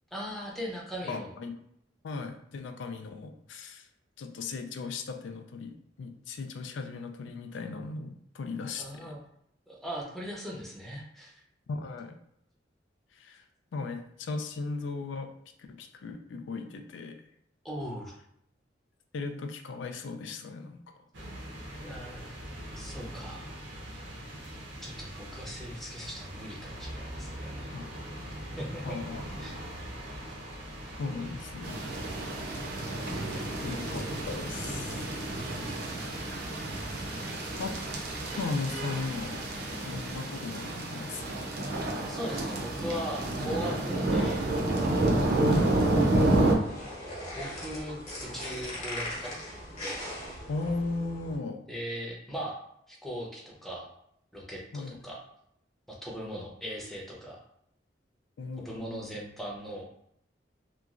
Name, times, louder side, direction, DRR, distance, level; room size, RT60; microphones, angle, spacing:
voice 1, 0.1-1.3 8.8-9.2 9.7-11.4 17.6-18.1 21.8-22.3 22.7-23.5 24.8-27.8 28.6-29.0 29.4-29.5 36.9-37.5 42.1-44.5 47.3-49.3 51.7-52.5 52.9-53.8 54.3-55.2 55.9-57.4 58.6-59.8, equal, ahead, -3 dB, 0.5 m, -39 dB
voice 2, 1.0-1.6 2.0-3.9 4.2-9.1 11.7-12.2 13.1-13.4 13.7-15.3 15.7-17.2 19.1-20.8 27.7-27.9 28.8-29.2 31.0-31.8 33.6-35.1 36.7-37.0 37.5-37.8 38.4-39.4 39.8-41.3 45.4-45.8 50.5-51.6 54.7-55.0 58.4-59.2, left 3 dB, 85° left, 6 dB, 0.4 m, -37 dB
sound 1, 21.1-40.2, equal, 90° right, 0.8 m, -42 dB
sound 2, 31.6-46.5, right 2 dB, 55° right, 0.5 m, -30 dB
sound 3, 46.3-51.4, left 1 dB, 40° left, 0.9 m, -39 dB
3.0 x 2.3 x 2.4 m, 0.73 s
head